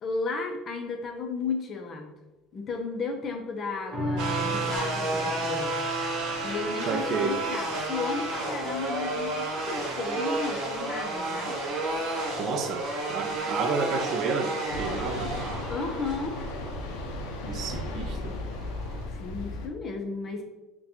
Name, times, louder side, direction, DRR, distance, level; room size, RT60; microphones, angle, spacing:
voice 1, 0.0-2.1 2.5-5.8 6.4-11.6 15.7-16.4 19.1-20.4, left 4 dB, 35° left, 0.5 m, -34 dB
sound 1, 3.9-10.6 11.0-11.1, equal, 15° right, 1.1 m, -39 dB
sound 2, 4.2-19.0, right 2 dB, 65° right, 0.9 m, -32 dB
voice 2, 6.9-7.4 12.4-15.4 17.5-18.4, right 5 dB, 45° right, 0.3 m, -31 dB
sound 3, 14.7-19.7, left 2 dB, 90° left, 0.4 m, -35 dB
3.9 x 2.2 x 2.8 m
cardioid pair, 130°, 0 cm